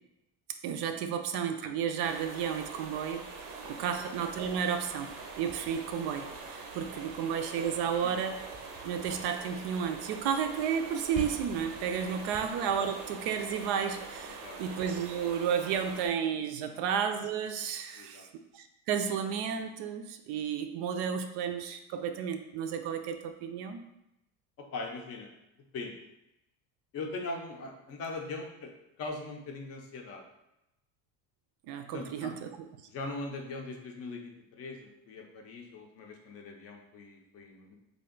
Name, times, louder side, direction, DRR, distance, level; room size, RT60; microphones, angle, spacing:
voice 1, 0.6-3.2 3.7-8.4 8.8-18.3 18.5-23.9 31.7-32.7, right 7 dB, 65° right, 7 dB, 0.5 m, -32 dB
sound 1, 2.0-16.1, right 4 dB, 90° right, 0.8 m, -44 dB
sound 2, 4.2-7.7 8.0-12.8, right 2 dB, 20° right, 0.6 m, -49 dB
voice 2, 17.9-18.3 24.6-25.3 25.7-26.0 26.9-28.7 29.0-30.2 31.9-32.3 32.9-37.7, left 3 dB, 35° left, 2 dB, 0.5 m, -41 dB
3.3 x 2.6 x 3.7 m, 0.89 s
cardioid pair, 155°, 42 cm